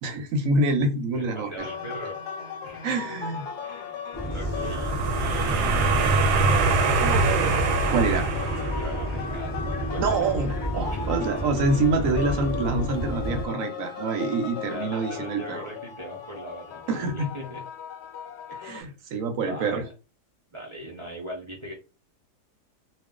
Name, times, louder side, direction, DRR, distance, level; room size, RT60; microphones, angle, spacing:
voice 1, 0.0-1.5 2.8-3.5 7.0-7.6 7.9-8.3 10.0-15.6 16.9-17.3 18.6-19.8, right 3 dB, 65° right, 0.9 m, -26 dB
voice 2, 1.1-2.2 2.6-2.9 3.6-4.0 4.3-6.7 8.7-10.4 14.7-17.6 18.5-18.9 19.4-19.8 20.5-21.7, right 1 dB, 35° right, 0.4 m, -40 dB
sound 1, 1.6-18.8, left 7 dB, 80° left, 1.1 m, -38 dB
sound 2, 4.1-13.5, equal, 25° left, 0.4 m, -31 dB
sound 3, 4.5-9.2, right 3 dB, 85° right, 1.2 m, -24 dB
2.4 x 2.3 x 3.6 m
omnidirectional pair, 1.7 m